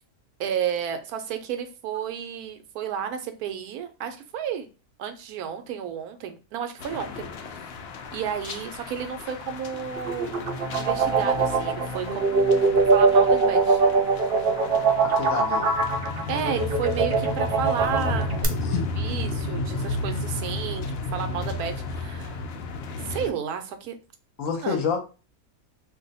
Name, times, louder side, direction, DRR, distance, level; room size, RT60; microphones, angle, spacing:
voice 1, 0.4-4.7 5.0-7.3 7.5-7.7 8.1-10.4 10.8-13.8 16.3-18.3 18.7-22.4 23.0-24.0 24.6-24.8, right 8 dB, 80° right, 7 dB, 1.0 m, -32 dB
sound 1, 6.8-23.3, left 2 dB, 80° left, 0.5 m, -33 dB
sound 2, 10.0-18.4, right 4 dB, 60° right, 0.6 m, -22 dB
voice 2, 15.1-15.8 18.6-18.9 24.4-25.0, left 6 dB, 65° left, 3 dB, 1.0 m, -28 dB
2.6 x 2.2 x 3.9 m, 0.32 s
omnidirectional pair, 1.6 m